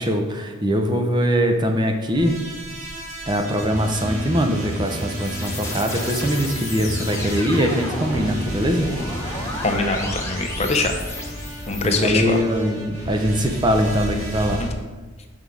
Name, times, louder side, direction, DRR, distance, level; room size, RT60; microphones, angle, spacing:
voice 1, 0.0-2.4 3.3-8.9 11.8-14.6, equal, 20° right, 4 dB, 0.6 m, -22 dB
sound 1, 2.1-14.7, right 1 dB, 85° right, 2.1 m, -32 dB
sound 2, 4.5-12.1, left 2 dB, 15° left, 1.1 m, -33 dB
voice 2, 9.6-10.9 11.7-12.4 14.6-14.7, left 3 dB, 30° left, 4 dB, 0.6 m, -23 dB
7.0 x 5.9 x 4.8 m, 1.3 s
head